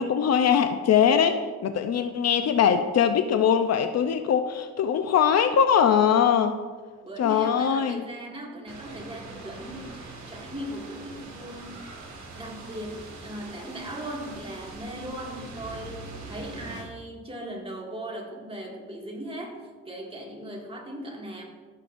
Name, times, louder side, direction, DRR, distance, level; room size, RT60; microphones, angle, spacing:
voice 1, 0.0-6.6 7.2-8.0, left 8 dB, 60° left, 8 dB, 0.6 m, -22 dB
voice 2, 7.0-11.9 12.3-21.4, right 1 dB, 20° right, -1 dB, 2.1 m, -38 dB
sound 1, 8.7-16.8, right 3 dB, 70° right, 2.0 m, -42 dB
14.0 x 6.7 x 2.6 m, 1.4 s
cardioid pair, 90°, 30 cm